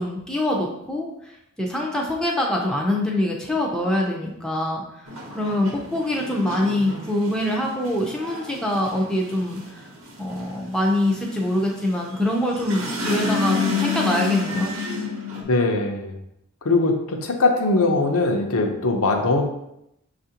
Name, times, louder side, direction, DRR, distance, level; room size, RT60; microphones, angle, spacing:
voice 1, 0.0-1.3 1.6-4.8 5.3-9.8 10.2-14.8, left 1 dB, 5° left, -1 dB, 0.4 m, -24 dB
sound 1, 5.1-15.4, left 4 dB, 70° right, 0.8 m, -29 dB
voice 2, 15.5-16.2 16.6-19.4, left 3 dB, 80° left, 3 dB, 0.6 m, -21 dB
5.7 x 2.4 x 2.8 m, 0.82 s
head